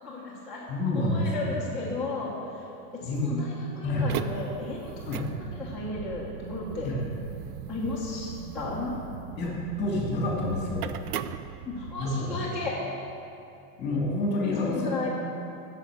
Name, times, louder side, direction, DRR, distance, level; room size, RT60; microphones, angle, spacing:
voice 1, 0.0-0.7 0.9-2.6 3.1-5.1 5.5-6.9 7.7-8.9 11.7-12.8 14.6-15.1, left 3 dB, ahead, -9 dB, 0.8 m, -34 dB
voice 2, 0.7-1.5 3.0-3.3 3.8-4.1 5.1-5.3 6.8-7.0 9.4-10.9 12.0-12.4 13.8-15.0, left 2 dB, 20° left, -3 dB, 2.6 m, -28 dB
sound 1, 3.9-12.1, right 10 dB, 65° right, 0.6 m, -39 dB
8.9 x 6.9 x 8.2 m, 2.7 s
supercardioid pair, 175°, 49 cm